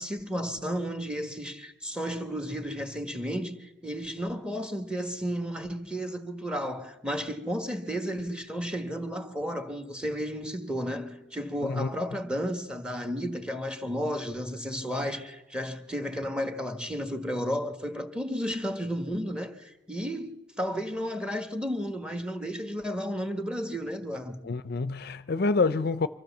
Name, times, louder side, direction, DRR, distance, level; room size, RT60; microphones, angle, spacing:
voice 1, 0.0-24.4, equal, 5° right, 1.5 m, -33 dB
voice 2, 24.4-26.1, left 3 dB, 60° left, 0.6 m, -27 dB
25.0 x 15.0 x 7.2 m
head